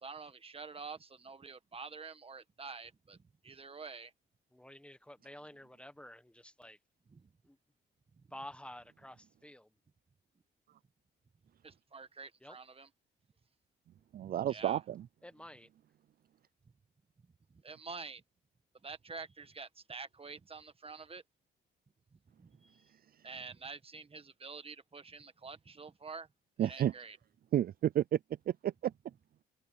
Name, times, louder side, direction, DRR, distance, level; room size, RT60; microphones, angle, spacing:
voice 1, 0.0-3.2 3.4-4.1 11.6-12.9 14.2-14.8 17.6-18.2 18.8-21.2 22.4-22.8 23.2-26.3 26.6-27.2, right 4 dB, 30° right, 1.6 m, -47 dB
voice 2, 4.5-6.8 7.4-7.6 8.3-9.7 12.4-12.6 15.2-15.7, left 1 dB, 5° left, 1.5 m, -51 dB
voice 3, 14.1-15.1 26.6-26.9 27.5-28.2 28.5-28.9, right 11 dB, 50° right, 0.4 m, -31 dB
open air
cardioid pair, 90°, 20 cm